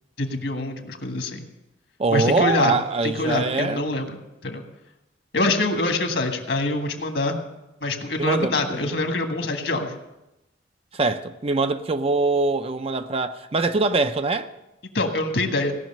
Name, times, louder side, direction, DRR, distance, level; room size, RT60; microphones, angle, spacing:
voice 1, 0.2-1.5 2.1-2.7 3.0-4.6 5.3-7.4 7.8-9.9 14.9-15.7, left 2 dB, 65° left, 1.8 m, -25 dB
voice 2, 2.0-3.8 8.2-9.0 10.9-14.5, right 3 dB, 35° right, 0.6 m, -23 dB
17.5 x 6.2 x 8.7 m
head